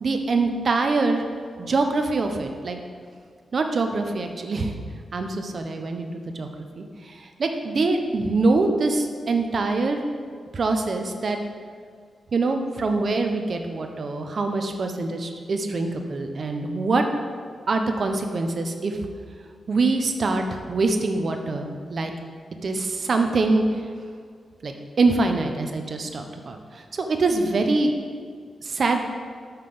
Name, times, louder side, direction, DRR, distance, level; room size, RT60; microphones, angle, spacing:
voice 1, 0.0-1.2 1.6-2.8 3.5-4.7 5.1-6.5 6.8-10.0 10.5-11.4 12.3-17.0 17.7-19.0 19.7-22.1 22.6-23.8 24.6-27.9 28.6-29.0, right 3 dB, 50° right, 5 dB, 0.8 m, -24 dB
5.7 x 5.7 x 6.8 m, 2.1 s
wide cardioid pair, 105°, 0 cm